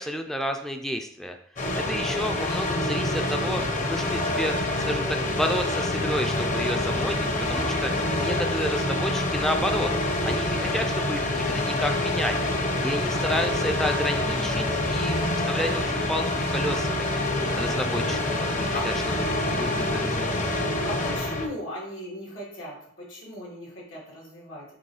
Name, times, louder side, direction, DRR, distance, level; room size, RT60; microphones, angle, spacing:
voice 1, 0.0-1.4 1.8-3.6 3.9-7.9 8.2-9.9 10.3-12.5 12.8-15.2 15.5-17.3 17.6-18.9 19.5-20.4, equal, ahead, 5 dB, 0.4 m, -31 dB
sound 1, 1.6-21.5, left 1 dB, 40° left, 0.9 m, -26 dB
voice 2, 20.8-24.6, left 1 dB, 90° left, -4 dB, 2.7 m, -38 dB
6.8 x 3.0 x 4.8 m, 0.66 s
head